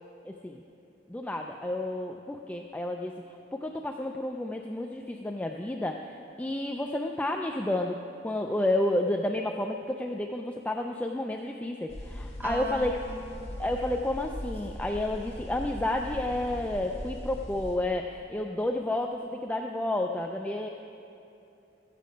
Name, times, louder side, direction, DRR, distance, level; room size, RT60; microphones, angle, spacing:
voice 1, 0.2-0.6 1.1-3.2 3.5-8.0 8.2-12.9 13.6-20.7, left 1 dB, 10° left, 2 dB, 0.3 m, -31 dB
sound 1, 11.9-17.8, equal, 35° left, 1.8 m, -40 dB
voice 2, 12.4-13.5, equal, 10° right, 1 dB, 0.8 m, -38 dB
13.5 x 8.4 x 5.1 m, 2.8 s
head